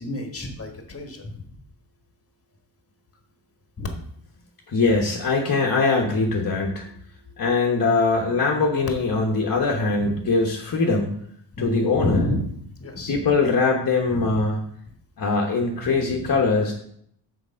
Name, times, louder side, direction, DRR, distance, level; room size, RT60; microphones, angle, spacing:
voice 1, 0.0-1.5 3.8-3.9 10.0-10.2 11.5-13.2 14.1-14.4 15.8-16.3, left 1 dB, 30° left, 4 dB, 1.4 m, -29 dB
voice 2, 4.7-6.9 7.4-11.2 11.6-12.2 13.1-14.6 15.2-16.7, left 3 dB, 50° left, 0 dB, 1.1 m, -22 dB
6.7 x 4.7 x 6.2 m, 0.67 s
wide cardioid pair, 140°, 44 cm